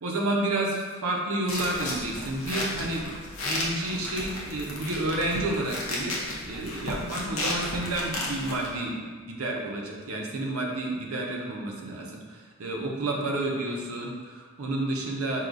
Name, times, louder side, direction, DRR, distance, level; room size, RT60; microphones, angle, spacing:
voice 1, 0.0-3.1 3.4-6.1 6.5-15.5, right 2 dB, 85° right, -1 dB, 0.6 m, -30 dB
sound 1, 1.5-8.7, left 1 dB, 80° left, 0.8 m, -34 dB
4.7 x 2.8 x 2.6 m, 1.5 s
head